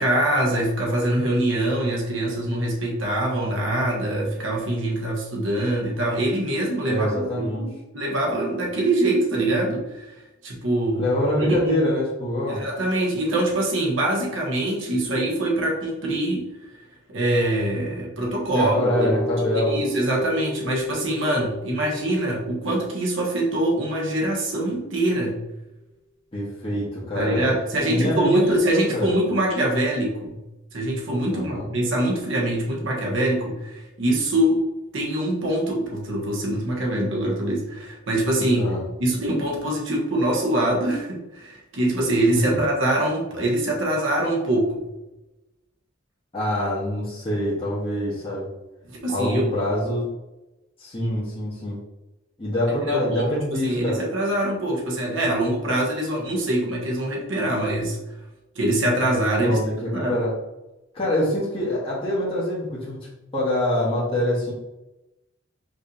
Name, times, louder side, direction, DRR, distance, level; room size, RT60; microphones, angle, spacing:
voice 1, 0.0-10.1 10.4-11.1 11.4-11.9 12.5-16.5 17.1-19.1 19.7-25.4 27.1-30.4 30.7-34.6 34.9-38.7 39.0-44.9 48.9-49.6 51.0-51.1 52.8-58.0 58.5-59.6 59.9-60.2, right 1 dB, 80° right, -2 dB, 1.2 m, -24 dB
voice 2, 6.9-7.7 10.9-12.6 18.5-19.8 26.3-28.4 28.7-29.2 31.3-31.7 38.5-38.8 46.3-48.5 49.1-50.0 50.8-51.8 52.4-54.0 59.3-60.3 60.9-63.0 63.3-64.5, left 1 dB, 30° left, -9 dB, 1.3 m, -25 dB
sound 1, 18.8-24.6, left 1 dB, 45° left, 1.2 m, -34 dB
5.0 x 3.2 x 2.7 m, 0.99 s
head